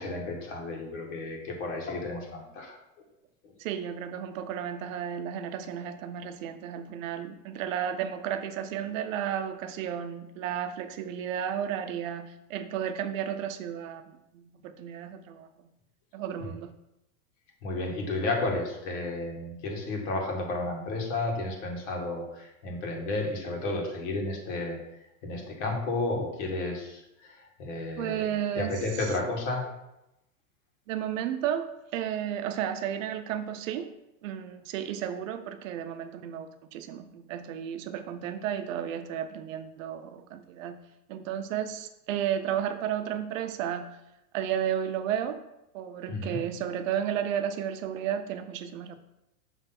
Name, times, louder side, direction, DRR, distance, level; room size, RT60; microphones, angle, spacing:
voice 1, 0.0-2.8 3.4-3.5 17.6-24.8 25.2-29.7 46.1-46.4, left 2 dB, 55° left, 1 dB, 2.1 m, -32 dB
voice 2, 3.6-15.5 16.1-16.7 28.0-29.1 30.9-33.9 34.2-40.8 41.1-43.9 44.3-45.4 45.7-49.0, right 9 dB, 60° right, 9 dB, 0.8 m, -33 dB
6.4 x 3.4 x 5.8 m, 0.89 s
supercardioid pair, 150°, 43 cm